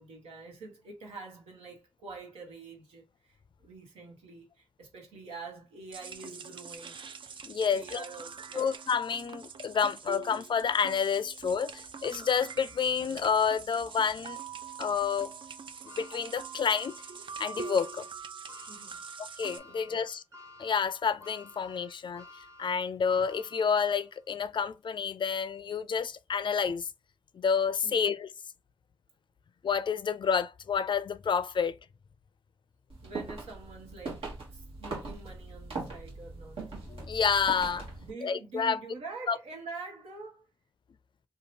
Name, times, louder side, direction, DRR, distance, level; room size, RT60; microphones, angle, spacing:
voice 1, 0.0-7.0 7.6-8.7 18.7-19.0 19.6-20.1 27.8-28.2 33.0-36.7 37.9-40.5, right 3 dB, 90° right, 1.0 m, -46 dB
sound 1, 5.9-19.6, right 5 dB, 55° right, 0.4 m, -44 dB
voice 2, 7.4-8.0 8.5-14.4 14.8-15.3 16.0-16.9 17.4-18.1 19.4-20.2 20.6-22.2 22.6-26.9 27.3-28.3 29.6-31.7 36.9-37.9 38.2-38.8 39.3-39.4, left 6 dB, 50° left, 0.4 m, -29 dB
sound 2, 15.9-24.2 24.7-24.8 26.0-26.1, left 2 dB, 30° right, 1.3 m, -53 dB
sound 3, 32.9-38.1, right 3 dB, 70° right, 1.2 m, -41 dB
2.8 x 2.3 x 2.7 m
supercardioid pair, 45°, 10 cm